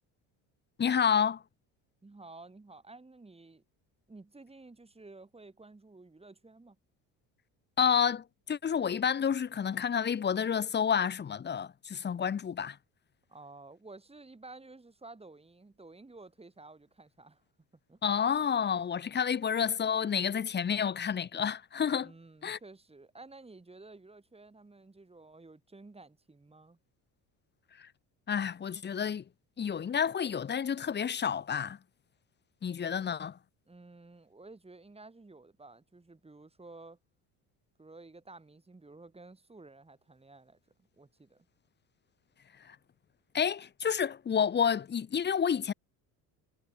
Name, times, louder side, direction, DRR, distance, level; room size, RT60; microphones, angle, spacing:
voice 1, 0.8-1.4 7.8-12.8 18.0-22.1 22.4-22.6 27.8-27.9 28.3-29.2 29.6-31.8 32.6-33.4 42.6-42.8 43.3-45.7, left 7 dB, 25° left, 0.8 m, -29 dB
voice 2, 2.0-3.6 4.1-6.8 13.3-17.4 17.9-18.0 22.0-26.8 33.7-37.0 37.8-40.6 41.0-41.5, right 3 dB, 15° right, 5.2 m, -52 dB
cardioid pair, 105°, 40 cm